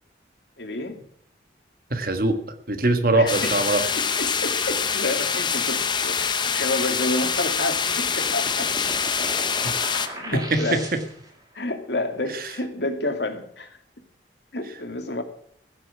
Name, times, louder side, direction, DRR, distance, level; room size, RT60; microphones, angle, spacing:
voice 1, 0.6-1.0 3.1-3.6 3.9-8.7 9.2-9.3 10.1-10.9 11.5-13.7 14.5-15.2, left 2 dB, 70° left, 5 dB, 2.2 m, -29 dB
voice 2, 1.9-2.4 2.7-3.9 9.6-9.7 10.3-10.8, right 2 dB, 50° right, 7 dB, 1.5 m, -22 dB
sound 1, 3.3-10.1, left 6 dB, 25° left, 0.8 m, -25 dB
sound 2, 7.8-11.4, right 1 dB, 20° right, 2.6 m, -38 dB
15.5 x 6.8 x 8.4 m, 0.67 s
head